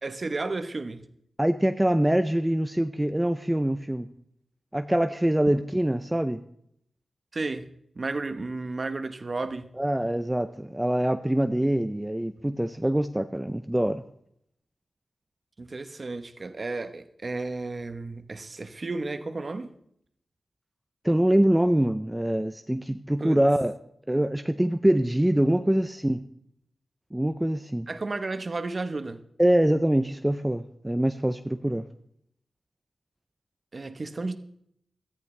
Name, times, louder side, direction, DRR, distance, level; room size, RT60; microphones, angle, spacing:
voice 1, 0.0-1.1 7.3-7.7 7.9-9.7 15.6-19.7 23.2-23.4 27.9-29.2 33.7-34.4, right 3 dB, 40° right, 1.0 m, -33 dB
voice 2, 1.4-4.1 4.7-6.4 9.8-14.0 21.0-23.7 24.1-26.2 27.1-27.9 29.4-31.9, right 1 dB, 10° right, 0.5 m, -24 dB
18.0 x 13.5 x 3.3 m
wide cardioid pair, 110°, 0 cm